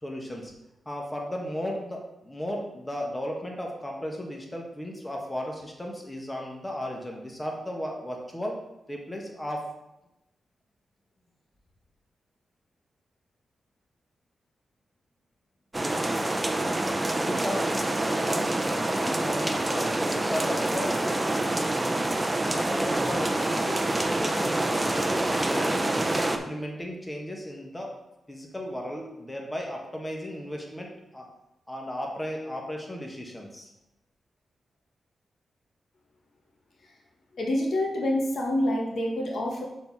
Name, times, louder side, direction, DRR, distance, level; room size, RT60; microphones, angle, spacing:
voice 1, 0.0-0.5 0.8-8.6 8.9-9.6 17.2-17.7 18.1-21.2 22.5-27.9 28.3-31.3 31.7-33.7, equal, 15° left, 0 dB, 1.5 m, -35 dB
sound 1, 15.7-26.4, right 1 dB, 20° right, 0.7 m, -26 dB
voice 2, 37.3-39.6, left 1 dB, 70° left, -1 dB, 1.4 m, -27 dB
6.6 x 4.2 x 4.7 m, 0.93 s
cardioid pair, 65°, 0 cm